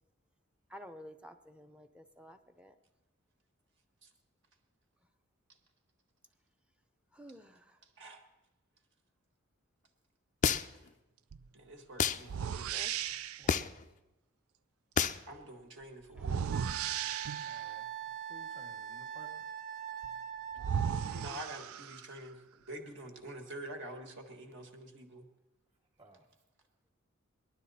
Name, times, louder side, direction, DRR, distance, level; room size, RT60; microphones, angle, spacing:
voice 1, 0.7-2.7 7.1-7.8 12.7-12.9 16.2-16.7, equal, 5° right, 7 dB, 0.7 m, -52 dB
sound 1, 10.4-10.9 12.0-12.2 13.5-13.8 15.0-15.2, left 7 dB, 35° left, 0.4 m, -29 dB
sound 2, 11.3-11.5 12.3-13.5 16.2-17.7 20.0-20.1 20.6-22.2, right 8 dB, 80° right, 0.4 m, -36 dB
voice 2, 11.5-12.8 15.3-16.4 21.1-25.2, right 1 dB, 60° right, 4 dB, 1.7 m, -47 dB
Wind instrument woodwind instrument, 16.5-21.4, right 9 dB, 40° right, 0.8 m, -42 dB
voice 3, 17.5-17.8 18.3-19.3 26.0-26.2, equal, 25° right, -4 dB, 1.5 m, -56 dB
19.0 x 12.0 x 4.2 m, 0.98 s
head